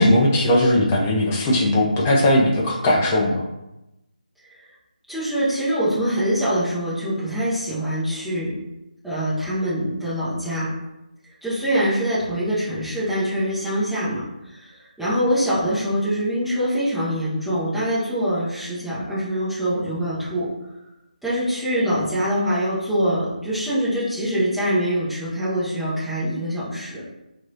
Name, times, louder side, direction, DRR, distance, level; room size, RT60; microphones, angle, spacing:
voice 1, 0.0-3.4, left 1 dB, 15° left, -3 dB, 0.6 m, -18 dB
voice 2, 5.1-8.5 9.0-10.7 11.4-14.2 14.4-20.5 21.2-27.2, equal, ahead, -13 dB, 0.9 m, -24 dB
4.5 x 2.5 x 2.9 m, 0.93 s
figure-of-eight pair, 155°, 5 cm